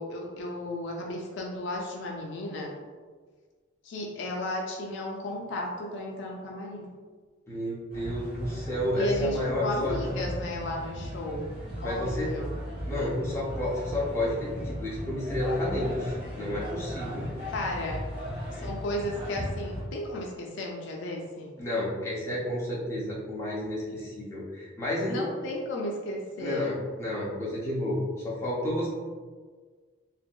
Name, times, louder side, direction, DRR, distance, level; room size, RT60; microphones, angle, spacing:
voice 1, 0.0-2.8 3.8-6.9 8.9-11.6 11.8-12.6 17.5-18.0 18.5-21.5 25.1-26.7, left 1 dB, 65° left, -1 dB, 0.4 m, -34 dB
voice 2, 7.5-10.0 11.8-12.3 12.9-17.3 21.6-25.2 26.4-28.9, left 1 dB, 15° left, -7 dB, 0.6 m, -31 dB
sound 1, 7.9-19.8, equal, 50° right, 1.2 m, -37 dB
2.7 x 2.5 x 2.2 m, 1.5 s
head